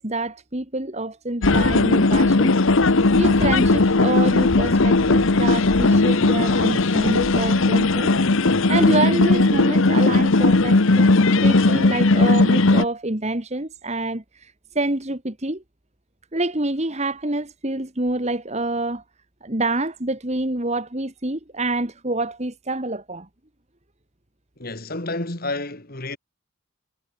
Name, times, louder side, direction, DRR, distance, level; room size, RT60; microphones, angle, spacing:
voice 1, 0.0-2.6 2.9-8.1 8.7-15.6 16.3-19.0 19.4-23.3, right 2 dB, 30° right, 1.9 m, -27 dB
sound 1, 1.4-12.8, left 3 dB, 65° left, 1.0 m, -17 dB
voice 2, 24.6-26.2, left 2 dB, 45° left, 2.7 m, -30 dB
head